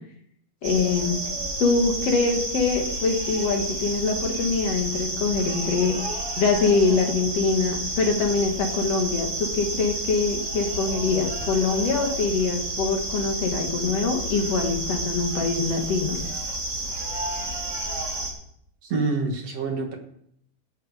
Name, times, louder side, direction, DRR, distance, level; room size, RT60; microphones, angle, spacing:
voice 1, 0.6-1.2 1.6-6.0 6.4-16.2, left 4 dB, 60° left, 2 dB, 1.6 m, -24 dB
sound 1, 0.6-18.3, right 1 dB, 30° right, 2.1 m, -30 dB
voice 2, 18.8-20.0, right 3 dB, 55° right, 3 dB, 1.8 m, -26 dB
17.5 x 9.2 x 4.9 m, 0.70 s
omnidirectional pair, 5.3 m